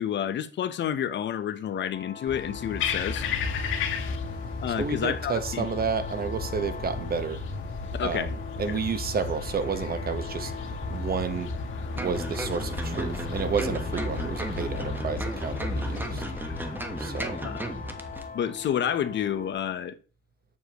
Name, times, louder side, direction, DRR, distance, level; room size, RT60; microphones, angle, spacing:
voice 1, 0.0-3.3 4.6-5.7 8.0-8.3 8.7-8.8 17.4-17.6 18.3-20.0, left 9 dB, 65° left, 0.9 m, -29 dB
sound 1, 1.9-19.5, left 6 dB, 35° left, 2.5 m, -43 dB
sound 2, 2.3-18.3, left 4 dB, 80° left, 2.0 m, -34 dB
voice 2, 4.7-7.4 8.0-10.5 10.9-11.5 11.9-16.2 17.0-17.4, right 6 dB, 50° right, 1.2 m, -31 dB
sound 3, 12.0-18.2 18.6-18.7, right 1 dB, 10° right, 1.2 m, -36 dB
8.1 x 7.4 x 3.0 m
cardioid pair, 90°, 20 cm